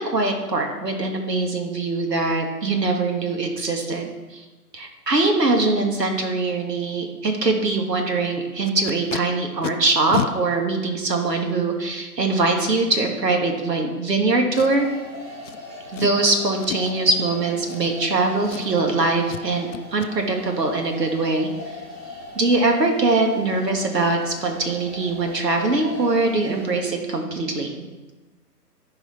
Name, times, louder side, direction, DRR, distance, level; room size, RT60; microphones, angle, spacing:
voice 1, 0.0-4.5 4.7-14.9 15.9-21.8 22.4-27.7, right 3 dB, 80° right, 3 dB, 1.9 m, -22 dB
Packing tape duct tape, 8.6-9.2 9.6-9.7 10.1-10.3 11.1-11.2 14.5-15.0 15.4-15.6 15.9-16.2 16.6-17.0 17.6-18.2 18.4-18.9 19.3-19.4 19.7-20.1 23.1-23.2 23.6-23.7 24.1-24.2 24.5-24.8 25.0-25.1, left 9 dB, 50° left, 0.5 m, -31 dB
sound 1, 14.6-26.8, left 1 dB, 55° right, 3.4 m, -40 dB
13.5 x 4.9 x 4.3 m, 1.2 s
figure-of-eight pair, 140°, 48 cm